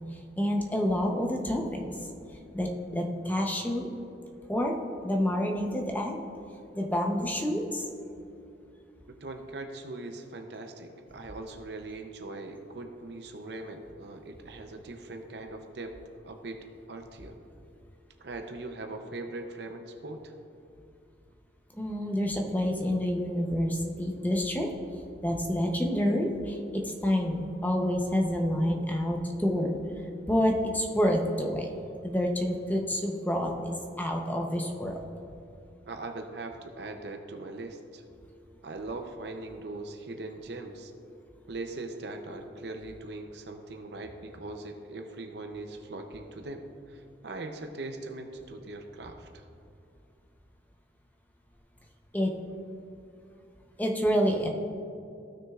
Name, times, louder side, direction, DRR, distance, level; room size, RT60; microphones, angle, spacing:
voice 1, 0.4-2.0 2.5-3.9 4.5-4.7 5.0-6.2 6.7-7.9 21.8-24.7 25.2-29.7 30.3-31.7 32.0-35.0 52.1-52.3 53.8-54.5, equal, 10° left, 1 dB, 0.7 m, -28 dB
voice 2, 9.1-16.0 16.2-17.4 18.2-20.3 35.9-38.0 38.6-40.9 41.5-49.5, right 2 dB, 60° right, 5 dB, 0.6 m, -40 dB
15.5 x 6.2 x 2.4 m, 2.6 s
head